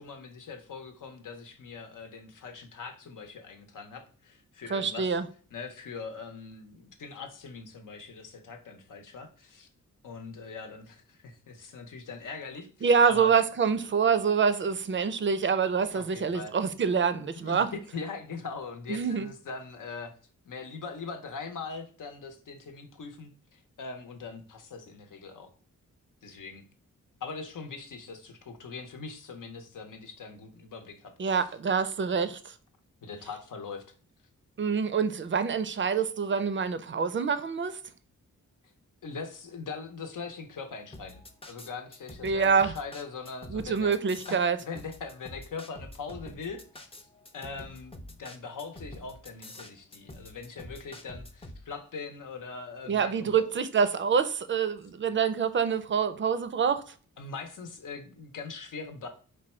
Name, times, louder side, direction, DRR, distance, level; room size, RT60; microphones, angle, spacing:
voice 1, 0.0-5.2 5.5-9.7 10.0-13.3 15.9-16.5 17.4-20.1 20.5-25.5 26.2-26.7 27.2-31.5 33.0-33.8 39.0-44.0 44.3-46.9 47.3-53.5 57.2-59.1, left 4 dB, 80° left, 0.9 m, -41 dB
voice 2, 4.7-5.2 12.8-17.7 18.9-19.3 31.2-32.5 34.6-37.8 42.2-42.7 43.5-44.6 52.9-56.8, right 6 dB, 40° right, 0.4 m, -26 dB
sound 1, 40.9-51.6, left 1 dB, 20° left, 0.5 m, -46 dB
4.8 x 2.3 x 4.2 m
wide cardioid pair, 150°, 31 cm